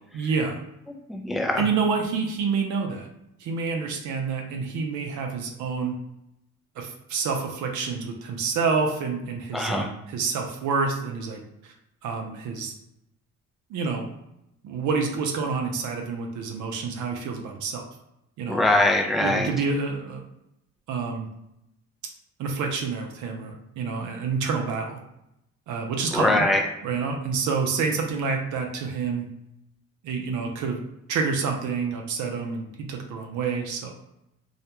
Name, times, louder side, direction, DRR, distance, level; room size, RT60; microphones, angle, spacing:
voice 1, 0.1-0.6 1.6-3.1 3.4-6.0 6.8-11.7 12.0-12.7 13.7-14.1 14.6-17.8 18.4-18.6 19.2-20.3 20.9-21.3 22.4-25.0 25.7-26.5 26.8-29.3 30.0-30.8 31.1-33.9, right 5 dB, 80° right, 2 dB, 0.5 m, -28 dB
voice 2, 1.1-1.6 9.5-9.9 18.5-19.5 26.1-26.6, left 1 dB, ahead, 2 dB, 0.3 m, -22 dB
2.4 x 2.1 x 2.9 m, 0.84 s
cardioid pair, 90°, 30 cm